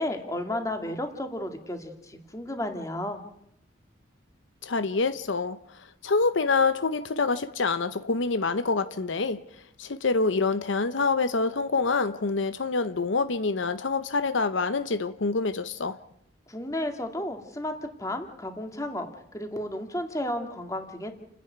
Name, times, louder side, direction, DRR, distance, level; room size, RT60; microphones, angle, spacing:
voice 1, 0.0-3.2 16.5-19.1 19.3-21.1, left 1 dB, 15° left, 2.2 m, -33 dB
voice 2, 4.6-9.4 9.8-16.0, left 4 dB, 75° left, 0.8 m, -26 dB
29.5 x 10.5 x 9.3 m
head